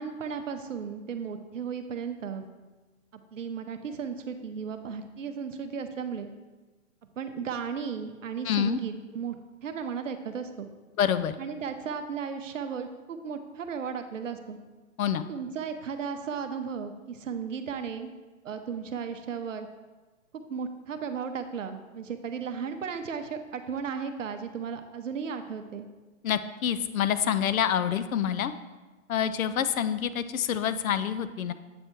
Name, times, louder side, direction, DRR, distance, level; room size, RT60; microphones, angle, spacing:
voice 1, 0.0-2.5 3.3-6.3 7.2-10.7 11.4-14.6 15.3-18.1 18.4-19.7 20.3-25.9, right 6 dB, 65° right, 8 dB, 0.7 m, -35 dB
voice 2, 8.4-8.8 11.0-11.3 15.0-15.2 26.2-28.5 29.1-31.5, left 9 dB, 80° left, 12 dB, 0.6 m, -27 dB
7.9 x 3.4 x 4.4 m, 1.2 s
hypercardioid pair, 175°, 41 cm